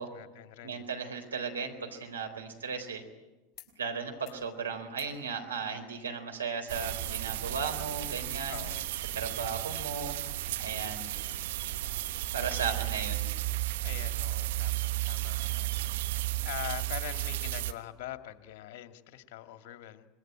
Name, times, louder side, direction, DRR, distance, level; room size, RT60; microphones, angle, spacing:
voice 1, 0.0-0.9 8.5-8.9 13.8-20.1, left 13 dB, 60° left, 7 dB, 2.1 m, -43 dB
voice 2, 0.6-3.0 3.8-8.6 9.1-10.2 10.6-11.1 12.3-13.3, right 5 dB, 85° right, 4 dB, 4.0 m, -36 dB
sound 1, 3.5-3.8 4.1-4.5 4.9-5.2 6.5-6.6, left 13 dB, 40° left, 5.0 m, -57 dB
sound 2, 6.7-17.7, right 15 dB, 65° right, 1.4 m, -33 dB
26.0 x 21.5 x 9.1 m, 1.1 s
hypercardioid pair, 85°, 0 cm